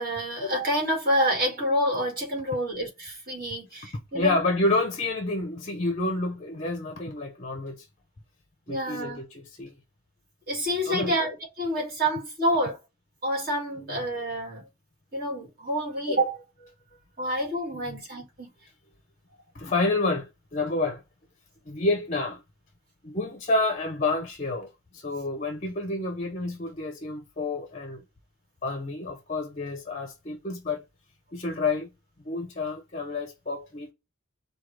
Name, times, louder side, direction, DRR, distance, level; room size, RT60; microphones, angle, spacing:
voice 1, 0.0-4.4 8.7-9.2 10.5-12.8 13.2-14.6 15.1-16.4 17.2-18.5, equal, 40° right, 1.8 m, -28 dB
voice 2, 4.1-7.9 8.7-9.7 10.9-11.1 13.8-14.1 16.9-17.0 17.7-18.0 19.5-21.0 21.7-22.4 23.0-28.0 28.6-30.8 31.3-31.9 32.2-33.9, left 2 dB, 30° left, 0.6 m, -29 dB
4.5 x 2.3 x 4.8 m
head